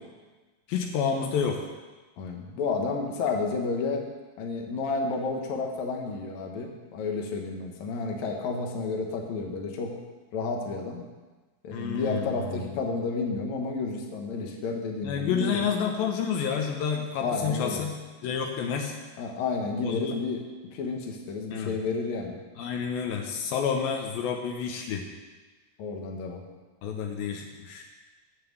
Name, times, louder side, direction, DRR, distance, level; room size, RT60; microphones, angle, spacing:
voice 1, 0.7-1.7 11.7-12.3 15.0-18.0 18.2-19.0 19.8-20.1 21.5-21.7 22.6-25.0 26.8-27.8, left 7 dB, 80° left, 2 dB, 2.6 m, -29 dB
voice 2, 2.2-4.0 4.4-9.9 10.3-11.1 11.6-15.6 17.2-17.9 19.2-20.4 20.7-22.4 25.8-26.4, left 4 dB, 60° left, 1 dB, 2.2 m, -31 dB
9.3 x 6.7 x 8.0 m, 1.3 s
omnidirectional pair, 4.3 m